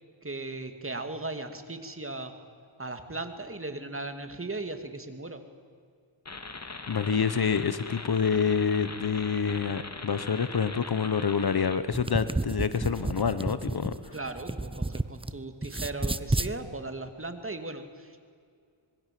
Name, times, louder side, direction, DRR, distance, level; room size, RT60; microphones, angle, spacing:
voice 1, 0.2-2.3 2.8-5.4 14.1-18.2, right 2 dB, 25° right, 7 dB, 2.4 m, -37 dB
sound 1, 6.3-11.8, left 3 dB, 35° left, 2.0 m, -41 dB
voice 2, 6.9-14.1, left 6 dB, 50° left, 13 dB, 1.1 m, -27 dB
sound 2, 11.8-15.3 15.6-16.5, right 2 dB, 10° right, 0.8 m, -31 dB
26.0 x 22.0 x 7.7 m, 2.2 s
cardioid pair, 70°, 48 cm